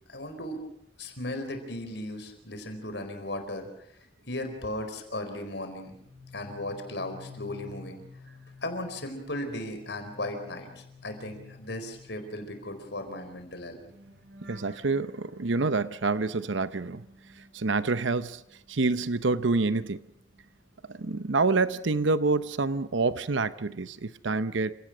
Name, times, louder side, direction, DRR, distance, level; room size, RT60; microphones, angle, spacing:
voice 1, 0.1-0.6 1.0-3.7 4.3-5.9 6.3-8.0 8.6-13.8, left 1 dB, 70° left, 4.5 m, -36 dB
sound 1, 5.9-18.2 18.5-20.6 20.9-21.2, left 3 dB, 65° right, 4.5 m, -51 dB
voice 2, 14.5-17.0 17.5-18.4 18.7-20.0 20.9-24.7, right 3 dB, 85° right, 0.8 m, -27 dB
29.0 x 17.5 x 6.2 m
head